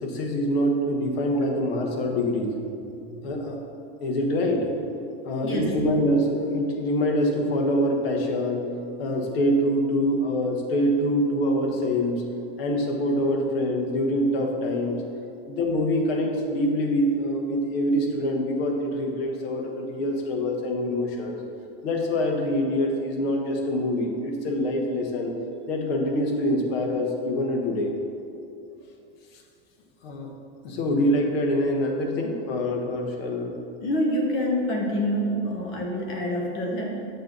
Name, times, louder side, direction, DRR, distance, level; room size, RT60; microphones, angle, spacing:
voice 1, 0.0-2.6 3.2-3.6 4.0-4.7 5.2-8.6 9.0-12.2 12.6-14.9 15.5-21.4 21.8-25.3 25.7-27.9 30.0-30.3 30.6-33.5, equal, 70° left, 2 dB, 1.4 m, -25 dB
voice 2, 5.4-5.8 33.8-37.1, equal, 40° left, 0 dB, 1.1 m, -27 dB
7.4 x 4.0 x 6.0 m, 2.6 s
supercardioid pair, 135°, 30 cm